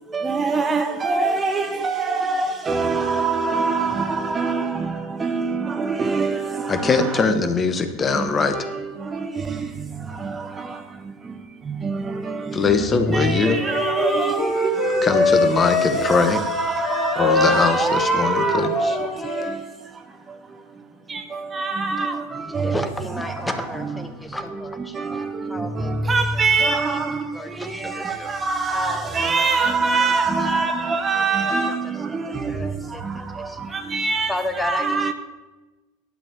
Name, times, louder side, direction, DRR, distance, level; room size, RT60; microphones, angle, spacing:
voice 1, 0.1-4.8 5.2-7.1 11.8-12.2 13.1-14.7 15.1-15.2 15.9-19.0 21.5-22.2 22.5-22.7 25.1-25.2 26.1-27.2 28.0-31.9 33.9-34.3 34.6-35.1, right 4 dB, 20° right, 0.7 m, -23 dB
voice 2, 6.7-8.5 12.5-13.7 15.0-16.4 17.2-19.0, left 4 dB, 25° left, 1.1 m, -21 dB
Wind instrument woodwind instrument, 13.2-19.6, left 2 dB, 40° left, 3.3 m, -23 dB
voice 3, 22.5-26.4 26.9-27.0 27.3-28.3 28.7-29.3 30.0-30.2 30.8-31.5 32.4-33.0 33.3-33.8 34.3-35.1, left 1 dB, 10° left, 1.3 m, -33 dB
11.5 x 5.3 x 7.1 m
figure-of-eight pair, 80°, 0 cm